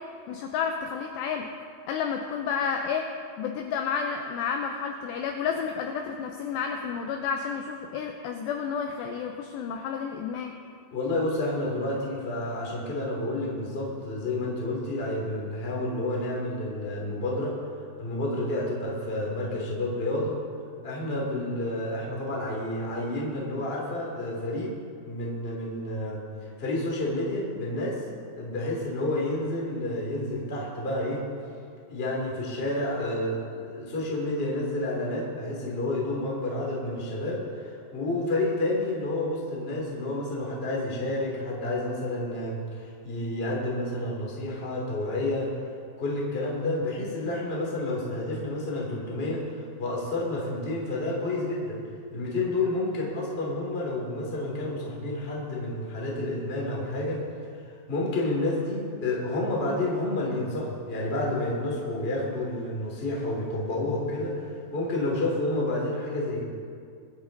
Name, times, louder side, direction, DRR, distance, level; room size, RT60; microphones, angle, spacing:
voice 1, 0.3-1.5 1.9-3.1 3.4-10.5, left 6 dB, 85° left, 3 dB, 2.4 m, -31 dB
voice 2, 10.9-17.5 18.0-20.4 20.8-24.7 25.0-28.1 28.3-31.2 31.9-45.5 46.0-51.8 52.1-57.2 57.9-66.4, left 2 dB, 25° left, -3 dB, 1.4 m, -30 dB
23.5 x 8.1 x 3.9 m, 2.3 s
omnidirectional pair, 5.7 m